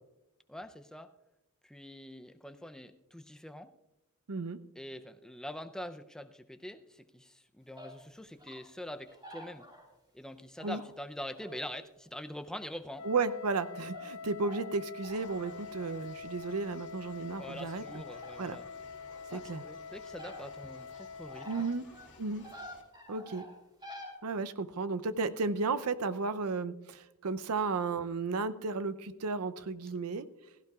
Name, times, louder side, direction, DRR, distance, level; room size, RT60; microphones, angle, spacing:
voice 1, 0.5-1.1 1.6-3.7 4.8-9.7 10.1-13.0 17.4-18.7 19.3-21.7, left 1 dB, 5° left, 8 dB, 0.5 m, -44 dB
voice 2, 4.3-4.6 10.6-10.8 13.0-18.0 18.4-18.6 19.3-19.6 21.5-21.8 22.2-22.4 23.1-23.4 24.2-30.3, right 4 dB, 85° right, 12 dB, 0.6 m, -34 dB
sound 1, 7.8-7.9 8.4-8.6 9.1-9.9 10.6-10.8 11.3-11.7 12.1-12.2 13.2-13.7 13.9-14.1 14.4-14.6 15.0-15.9 17.3-17.4 17.9-18.7 19.1-19.6 20.2-20.4 20.9-21.7 21.9-22.1 22.4-24.1, equal, 20° right, 3.4 m, -49 dB
Wind instrument woodwind instrument, 13.0-21.8, left 5 dB, 85° left, 0.9 m, -46 dB
sound 2, 15.0-22.8, left 3 dB, 55° left, 2.3 m, -57 dB
16.5 x 15.5 x 2.4 m, 0.97 s
head